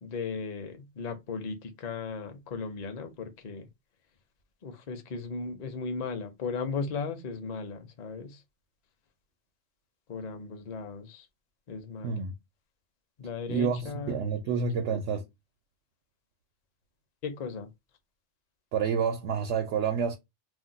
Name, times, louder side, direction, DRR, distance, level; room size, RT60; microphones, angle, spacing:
voice 1, 0.0-3.7 4.6-8.4 10.1-11.3 11.7-12.2 13.2-14.2 14.5-14.8 17.2-17.7, left 4 dB, 50° left, 0.6 m, -36 dB
voice 2, 12.0-12.3 13.5-15.2 18.7-20.2, right 6 dB, 80° right, 0.9 m, -29 dB
2.5 x 2.1 x 3.8 m
omnidirectional pair, 1.2 m